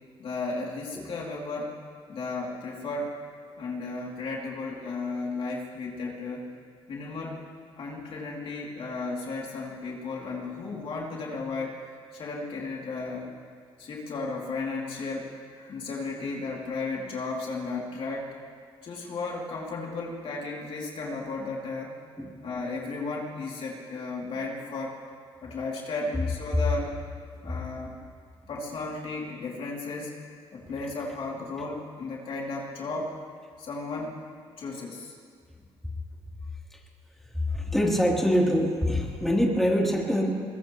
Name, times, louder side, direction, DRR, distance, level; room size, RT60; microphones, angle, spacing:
voice 1, 0.2-1.8 2.1-3.1 3.6-6.4 6.9-7.4 7.8-11.8 12.1-13.3 13.8-18.3 18.8-21.9 22.4-25.0 25.4-27.0 27.4-27.9 28.5-33.1 33.6-34.2 34.6-35.1, left 3 dB, 60° left, -3 dB, 2.8 m, -34 dB
voice 2, 37.5-40.4, equal, 5° left, -3 dB, 3.1 m, -24 dB
22.0 x 21.0 x 3.1 m, 2.1 s
cardioid pair, 105°, 11 cm